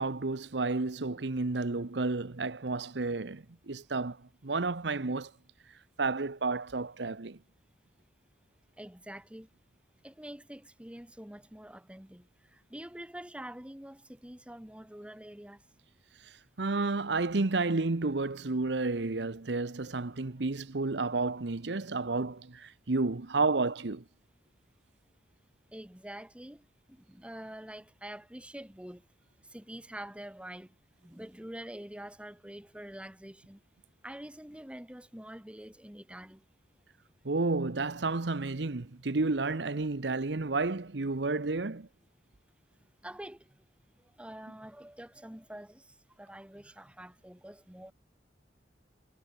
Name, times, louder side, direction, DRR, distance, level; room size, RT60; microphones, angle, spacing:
voice 1, 0.0-4.2 4.4-5.3 6.0-7.4 16.6-24.0 37.2-41.9, right 3 dB, 75° right, 1.0 m, -31 dB
voice 2, 8.8-9.5 10.0-12.3 12.5-15.6 25.7-26.6 26.9-29.0 29.5-30.7 31.0-33.6 34.0-36.4 43.0-43.5 44.2-45.8 46.2-47.9, right 1 dB, 5° right, 1.2 m, -46 dB
head